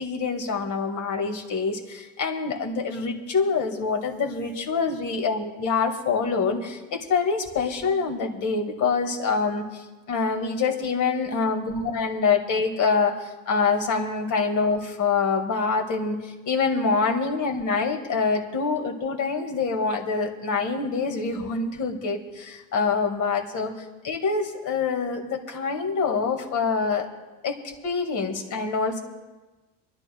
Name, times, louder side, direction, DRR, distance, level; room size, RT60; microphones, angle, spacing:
voice 1, 0.0-23.7 24.0-27.1 27.4-27.6 27.8-29.0, left 4 dB, 50° left, 3 dB, 2.0 m, -25 dB
29.5 x 11.5 x 2.3 m, 1.2 s
cardioid pair, 125°, 39 cm